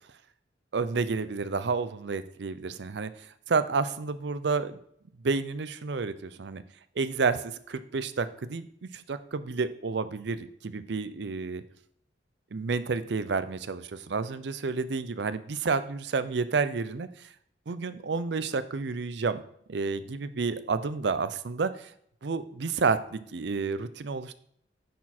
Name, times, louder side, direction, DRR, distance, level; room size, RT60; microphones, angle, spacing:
voice 1, 0.7-4.8 5.2-6.6 7.0-7.4 7.7-11.6 12.5-17.1 17.7-19.4 19.7-21.9 22.2-24.3, right 4 dB, 65° right, 13 dB, 0.5 m, -30 dB
10.0 x 4.3 x 4.3 m, 0.67 s
head